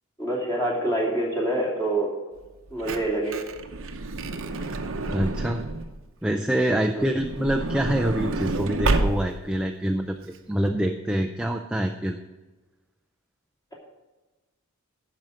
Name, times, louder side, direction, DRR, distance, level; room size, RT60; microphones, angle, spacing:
voice 1, 0.2-2.1 2.7-3.4 6.9-7.1, right 1 dB, 15° left, -3 dB, 2.8 m, -26 dB
Truck / Door, 2.5-6.0 7.0-9.6 10.2-10.3 10.5-10.7, right 2 dB, 60° right, 0.8 m, -29 dB
voice 2, 5.0-5.6 6.2-12.2, right 1 dB, 5° right, 3 dB, 0.4 m, -26 dB
12.0 x 5.0 x 7.6 m, 1.2 s
head